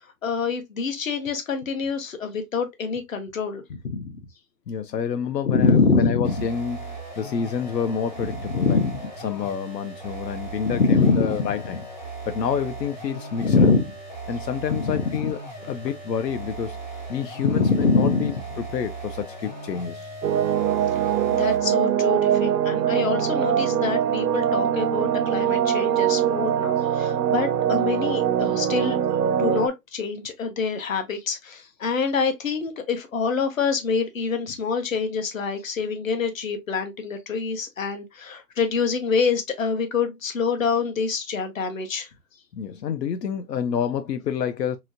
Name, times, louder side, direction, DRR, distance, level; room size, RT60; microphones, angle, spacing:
voice 1, 0.2-4.1 5.4-6.5 8.5-9.0 10.7-11.5 13.4-13.9 14.7-15.3 17.4-18.4 21.3-29.0 29.3-42.1, left 4 dB, 55° left, 0.9 m, -25 dB
voice 2, 4.7-8.8 9.2-11.9 12.3-13.7 14.3-15.4 15.7-16.8 17.1-20.1 42.6-44.8, left 7 dB, 85° left, 0.6 m, -28 dB
sound 1, 6.2-21.7, right 3 dB, 30° left, 0.5 m, -37 dB
sound 2, 20.2-29.7, right 9 dB, 85° right, 0.5 m, -22 dB
3.0 x 2.8 x 2.5 m
hypercardioid pair, 165°, 49 cm